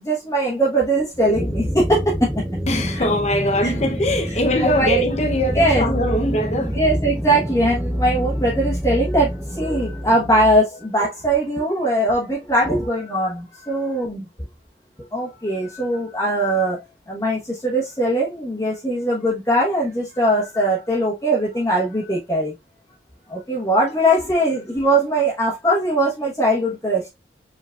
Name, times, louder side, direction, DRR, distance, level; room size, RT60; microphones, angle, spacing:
voice 1, 0.0-2.0 2.3-2.4 3.6-3.7 4.6-5.0 5.5-5.8 6.7-14.2 15.1-16.8 17.1-22.5 23.3-27.1, right 1 dB, 15° left, 1.2 m, -20 dB
sound 1, 1.3-10.6, equal, 5° right, 0.5 m, -27 dB
voice 2, 2.7-6.8, left 1 dB, 35° left, 0.7 m, -21 dB
5.1 x 3.8 x 2.4 m
head